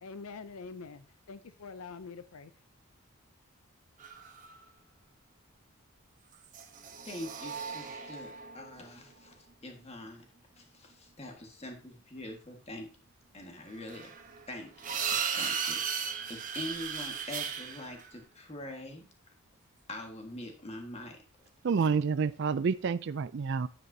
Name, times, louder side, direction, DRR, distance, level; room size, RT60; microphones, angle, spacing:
voice 1, 0.0-2.5, left 4 dB, 75° left, 13 dB, 0.5 m, -45 dB
sound 1, 4.0-4.7 6.4-9.3 13.8-18.1 21.8-21.9, right 7 dB, 35° right, 1.0 m, -36 dB
voice 2, 7.0-10.3 10.6-12.9 13.3-14.1 14.5-19.1 19.9-21.5, left 1 dB, 30° left, 3 dB, 1.6 m, -44 dB
voice 3, 21.6-23.7, right 5 dB, 55° right, 16 dB, 0.4 m, -28 dB
9.0 x 8.2 x 2.8 m, 0.38 s
head